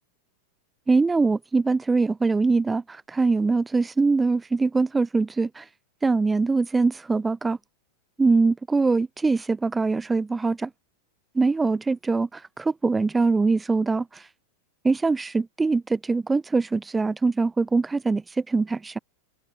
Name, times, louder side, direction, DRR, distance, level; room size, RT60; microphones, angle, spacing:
voice 1, 0.9-5.7 6.0-7.6 8.2-10.7 11.3-14.3 14.8-19.0, right 3 dB, 10° right, 0.7 m, -23 dB
figure-of-eight pair, 90°, 0 cm